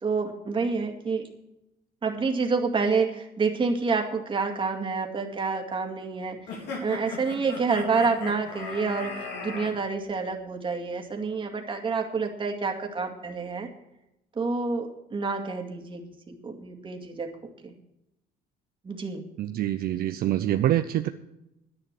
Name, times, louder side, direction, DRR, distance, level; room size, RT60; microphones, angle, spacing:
voice 1, 0.0-1.3 2.0-6.4 6.8-13.7 14.4-17.3 17.6-17.7 18.8-19.2, right 4 dB, 30° right, 3 dB, 2.2 m, -28 dB
sound 1, 6.5-9.7, left 4 dB, 85° left, 3.8 m, -37 dB
voice 2, 19.4-21.1, right 12 dB, 60° right, 8 dB, 0.6 m, -25 dB
11.0 x 10.5 x 6.1 m, 0.90 s
cardioid pair, 110°, 17 cm